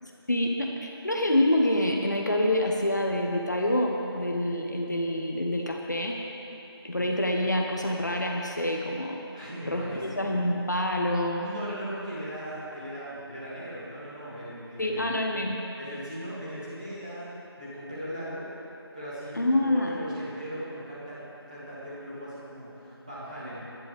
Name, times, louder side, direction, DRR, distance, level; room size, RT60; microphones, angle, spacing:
voice 1, 0.0-6.2 6.8-9.2 9.6-11.5 14.8-15.6 19.3-20.0, left 1 dB, 45° left, 0 dB, 1.1 m, -27 dB
voice 2, 9.3-10.2 11.4-15.1 15.8-17.3 17.6-18.5 18.9-21.2 21.5-23.6, equal, 20° right, -10 dB, 2.7 m, -38 dB
22.5 x 11.0 x 3.5 m, 3.0 s
figure-of-eight pair, 175°, 14 cm